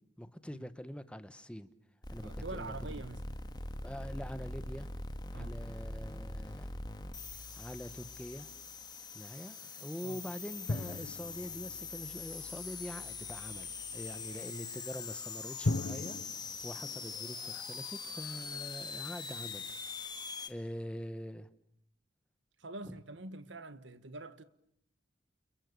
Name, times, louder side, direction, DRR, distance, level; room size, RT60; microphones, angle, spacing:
voice 1, 0.2-1.7 2.1-2.7 3.8-4.9 5.3-6.7 7.6-8.5 9.1-16.2 16.6-19.7 20.5-21.5 22.8-22.9, equal, 5° left, 1.3 m, -44 dB
sound 1, 2.0-20.5, left 4 dB, 25° left, 2.2 m, -43 dB
voice 2, 2.2-3.2 5.3-5.6 10.0-10.3 22.6-24.4, right 2 dB, 75° right, 1.5 m, -45 dB
sound 2, 5.5-9.2 10.5-14.9, equal, 50° left, 3.5 m, -58 dB
sound 3, 10.7-12.3 15.6-16.2, left 2 dB, 85° left, 1.1 m, -36 dB
30.0 x 29.0 x 6.8 m
head